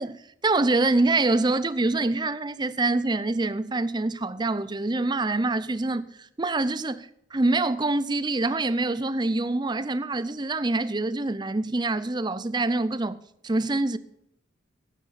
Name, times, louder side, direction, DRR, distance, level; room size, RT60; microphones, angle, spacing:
voice 1, 0.0-13.2 13.4-14.0, right 2 dB, 20° right, 0.5 m, -25 dB
15.5 x 10.0 x 4.2 m
head